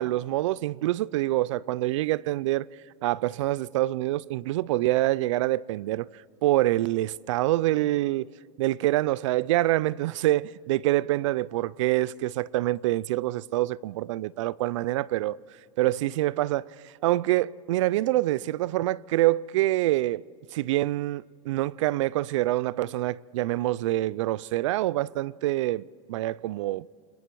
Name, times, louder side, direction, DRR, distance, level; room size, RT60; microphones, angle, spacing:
voice 1, 0.0-2.6 3.0-6.1 6.4-8.3 8.6-15.4 15.8-20.2 20.5-26.9, right 16 dB, 65° right, 0.4 m, -26 dB
27.0 x 21.5 x 4.6 m
supercardioid pair, 160°, 17 cm